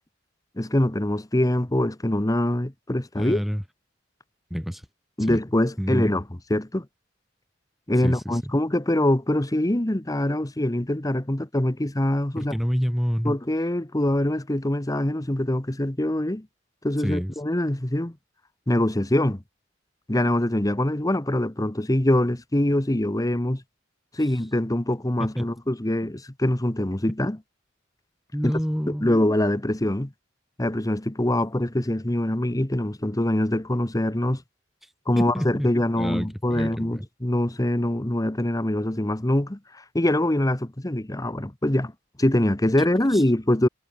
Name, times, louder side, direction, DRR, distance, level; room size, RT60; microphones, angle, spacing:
voice 1, 0.6-3.4 5.2-6.2 6.5-6.9 7.9-12.5 13.2-16.5 16.8-18.1 18.7-19.4 20.1-23.6 24.1-27.4 28.4-28.5 28.9-30.1 30.6-34.4 35.1-39.6 39.9-41.9 42.2-43.7, left 1 dB, 20° left, 1.2 m, -24 dB
voice 2, 3.1-3.6 4.5-4.8 5.3-5.4 5.8-6.1 8.0-8.5 12.4-13.3 17.0-17.3 25.4-25.5 28.3-29.1 35.2-37.1 43.1-43.2, equal, ahead, 4.4 m, -28 dB
head